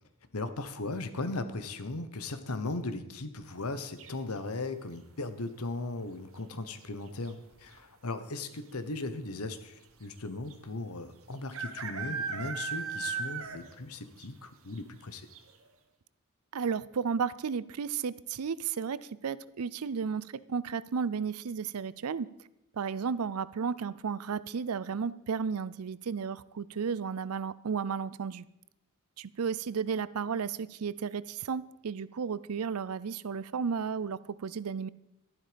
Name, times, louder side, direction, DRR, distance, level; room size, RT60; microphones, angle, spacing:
voice 1, 0.3-15.3, left 2 dB, 85° left, 11 dB, 1.1 m, -37 dB
sound 1, 4.0-4.5 6.3-6.7 6.9-7.0 7.2-7.8 8.5-8.6 8.9-9.0 10.5-10.6 11.5-13.8 14.2-14.3 14.8-14.9 15.3-15.4, right 6 dB, 70° right, 1.4 m, -36 dB
voice 2, 16.5-22.3 22.7-28.5 29.2-34.9, right 6 dB, 85° right, 18 dB, 0.5 m, -33 dB
12.5 x 11.5 x 5.2 m, 0.87 s
head